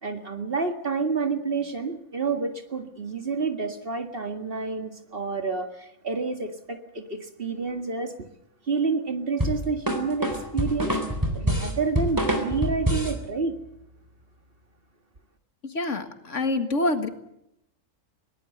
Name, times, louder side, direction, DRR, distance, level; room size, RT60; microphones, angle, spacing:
voice 1, 0.0-8.1 8.7-11.0 11.3-13.6, right 4 dB, 45° right, 5 dB, 2.1 m, -29 dB
sound 1, 9.4-13.2, equal, 15° right, 3.6 m, -26 dB
voice 2, 15.6-17.1, left 2 dB, 70° left, 7 dB, 2.2 m, -26 dB
21.5 x 18.5 x 8.0 m, 0.81 s
omnidirectional pair, 1.3 m